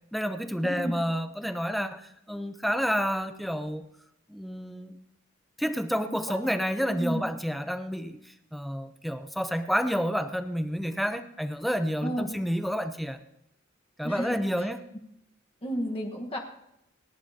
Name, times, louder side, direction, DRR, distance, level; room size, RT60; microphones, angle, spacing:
voice 1, 0.1-2.0 2.3-3.9 4.3-4.9 5.6-8.2 8.5-13.2 14.0-14.8, equal, ahead, 8 dB, 0.7 m, -29 dB
voice 2, 0.6-0.9 6.0-6.4 6.9-7.2 12.0-12.3 14.0-14.4 15.6-16.4, equal, 25° left, 1 dB, 1.3 m, -32 dB
28.5 x 10.5 x 2.8 m, 0.81 s
head